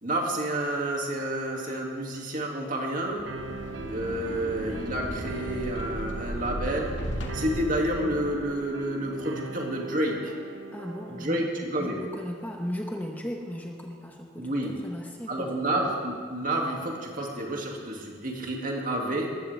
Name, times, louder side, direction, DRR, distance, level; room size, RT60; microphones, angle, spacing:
voice 1, 0.0-3.3 3.9-10.3 11.1-12.0 14.4-14.8 15.3-19.4, right 1 dB, 45° right, -1 dB, 2.3 m, -30 dB
sound 1, 3.2-8.7, equal, 75° left, 1.8 m, -36 dB
sound 2, 3.3-11.3, right 4 dB, 85° right, 0.8 m, -40 dB
voice 2, 10.7-15.8, equal, 10° left, 1 dB, 1.1 m, -37 dB
20.0 x 14.5 x 3.4 m, 2.1 s
head